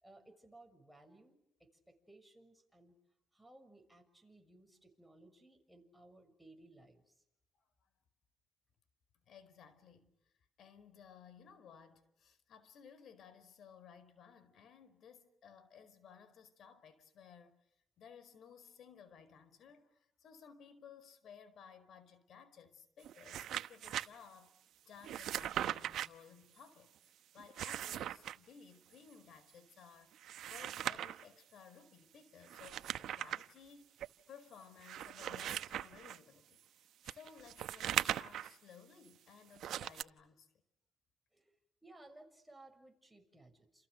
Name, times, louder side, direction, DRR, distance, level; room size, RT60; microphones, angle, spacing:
voice 1, 0.0-3.0 3.3-7.1 41.3-41.5 41.8-43.9, right 2 dB, 5° right, 6.8 m, -60 dB
voice 2, 9.3-10.1 10.6-17.5 18.0-24.5 24.8-30.1 30.5-40.5, left 7 dB, 65° left, 4.8 m, -58 dB
sound 1, 23.0-24.1 25.0-26.1 27.4-28.4 30.1-31.2 32.5-33.5 34.0-34.1 34.8-36.2 37.1-38.5 39.6-40.0, right 11 dB, 75° right, 1.0 m, -39 dB
29.5 x 29.0 x 6.8 m
cardioid pair, 90°, 0 cm